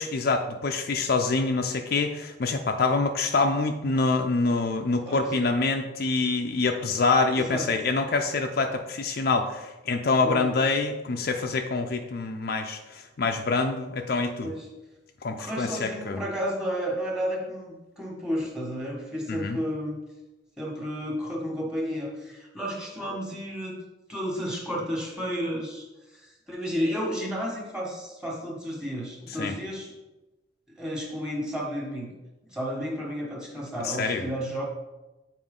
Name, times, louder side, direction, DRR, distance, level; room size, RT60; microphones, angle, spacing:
voice 1, 0.0-14.5 15.2-16.2 19.3-19.6 29.4-29.5 33.8-34.3, left 3 dB, 50° left, 4 dB, 0.4 m, -26 dB
voice 2, 7.4-7.7 10.2-10.5 14.4-14.7 15.4-20.0 20.6-23.7 24.1-25.8 26.1-29.9 30.7-32.1 32.5-34.6, equal, 5° right, -3 dB, 1.5 m, -32 dB
7.8 x 4.4 x 3.7 m, 1.1 s
head